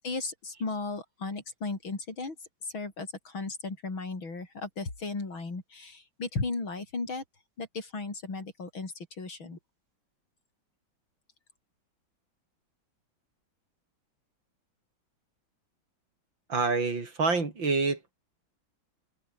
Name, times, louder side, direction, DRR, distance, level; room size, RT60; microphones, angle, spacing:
voice 1, 0.0-2.4 2.6-7.2 7.6-9.6, left 3 dB, 80° left, 5.8 m, -35 dB
voice 2, 16.5-18.1, right 4 dB, 70° right, 4.8 m, -27 dB
omnidirectional pair, 2.2 m